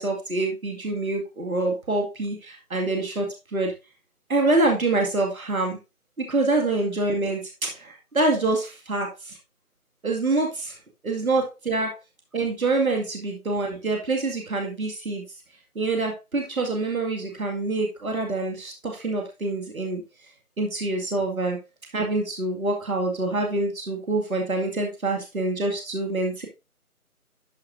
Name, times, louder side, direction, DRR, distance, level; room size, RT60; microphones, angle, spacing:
voice 1, 0.0-3.7 4.3-5.8 6.2-9.4 10.0-10.8 11.0-12.0 12.3-15.2 15.8-20.0 20.6-21.6 21.9-26.5, right 2 dB, 65° right, 1 dB, 2.2 m, -26 dB
12.5 x 4.9 x 2.6 m, 0.27 s
figure-of-eight pair, 170°, 45 cm